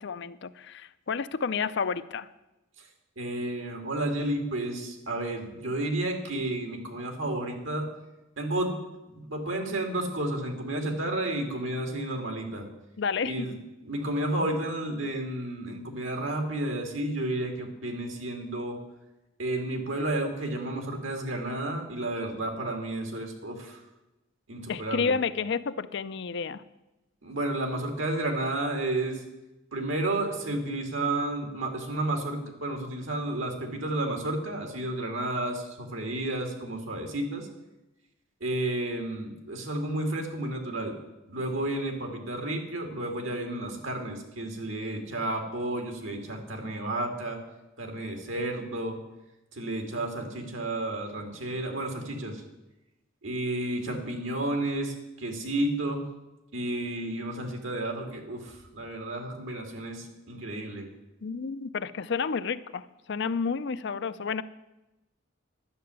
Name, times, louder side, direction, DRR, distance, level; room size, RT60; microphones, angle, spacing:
voice 1, 0.0-2.3 13.0-13.5 24.7-26.6 61.2-64.4, left 5 dB, 65° left, 14 dB, 0.5 m, -30 dB
voice 2, 3.2-7.9 8.4-8.7 9.1-12.7 13.2-13.6 13.8-18.8 19.4-23.8 24.5-25.1 27.2-29.2 29.7-37.5 38.4-40.9 41.3-47.4 47.8-49.0 49.5-52.4 53.2-56.1 56.5-60.9, right 1 dB, 90° right, 4 dB, 2.4 m, -31 dB
11.5 x 6.8 x 9.5 m, 0.99 s
head